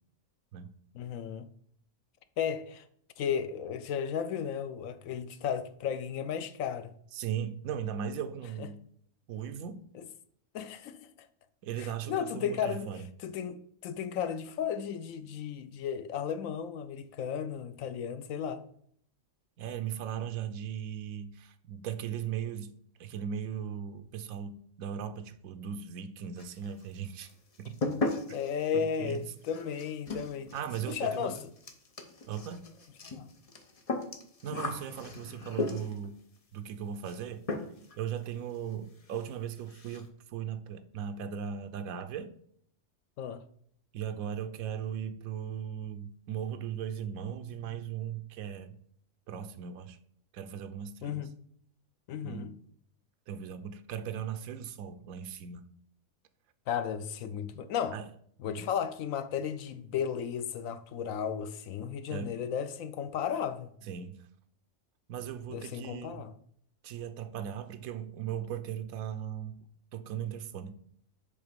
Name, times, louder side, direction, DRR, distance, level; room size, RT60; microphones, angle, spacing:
voice 1, 0.9-1.5 2.4-2.8 3.2-6.9 8.6-8.7 9.9-10.0 10.5-11.1 11.8-12.9 13.2-18.6 28.3-30.5 30.9-31.4 33.0-33.3 43.2-43.4 51.0-51.4 52.1-52.5 56.7-58.0 58.4-63.7 65.5-66.3, left 8 dB, 75° left, 1.0 m, -34 dB
voice 2, 7.1-8.8 9.3-9.8 11.6-13.1 19.6-22.7 23.0-27.3 27.6-27.8 28.3-28.4 28.7-29.2 30.5-31.3 32.3-32.6 34.4-36.2 36.5-37.4 38.0-42.3 43.9-48.8 49.3-50.0 50.3-51.2 52.2-52.6 53.3-55.7 57.9-58.1 58.5-58.7 62.1-62.4 63.8-64.2 65.1-66.2 66.8-69.6 69.9-70.8, right 8 dB, 80° right, 1.1 m, -38 dB
sound 1, 26.4-26.9 27.2-36.1 37.0-37.2 37.5-38.0 38.2-38.3 38.7-38.8 39.1-39.3 39.6-40.1, left 2 dB, 35° left, 0.7 m, -37 dB
8.0 x 3.4 x 5.1 m
omnidirectional pair, 1.5 m